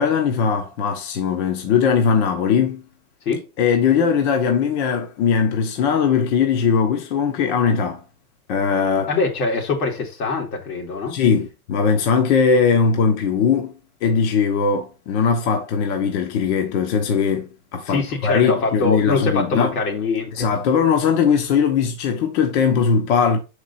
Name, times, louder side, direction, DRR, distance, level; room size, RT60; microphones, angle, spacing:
voice 1, 0.0-2.8 3.6-8.0 8.5-9.1 11.1-13.8 14.0-19.7 20.3-23.4, left 6 dB, 50° left, 1.1 m, -19 dB
voice 2, 9.1-11.1 17.9-20.5, left 3 dB, 85° left, 2.8 m, -23 dB
5.9 x 4.9 x 4.2 m
supercardioid pair, 150°, 43 cm